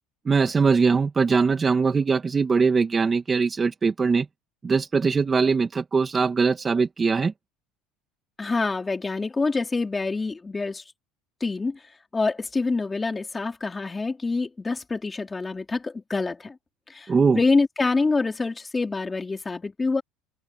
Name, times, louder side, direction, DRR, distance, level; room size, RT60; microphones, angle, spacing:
voice 1, 0.3-4.3 4.6-7.3 17.1-17.4, right 5 dB, 20° right, 2.4 m, -21 dB
voice 2, 8.4-10.8 11.4-11.8 12.1-16.6 16.9-20.0, left 3 dB, 15° left, 4.1 m, -26 dB
supercardioid pair, 125°, 0 cm